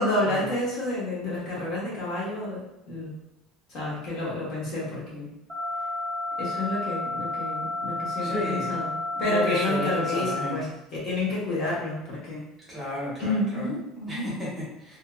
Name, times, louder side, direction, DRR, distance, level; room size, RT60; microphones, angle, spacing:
voice 1, 0.0-2.6 2.9-3.1 3.7-5.3 6.4-10.7 10.9-12.5 13.2-14.3, left 2 dB, 45° left, -6 dB, 1.0 m, -29 dB
sound 1, 5.5-10.5, left 2 dB, 5° left, 0.7 m, -31 dB
voice 2, 8.2-8.8 9.1-10.6 12.7-13.7 14.1-15.0, equal, 15° right, -7 dB, 1.1 m, -33 dB
2.7 x 2.6 x 2.3 m, 0.89 s
cardioid pair, 165°, 0 cm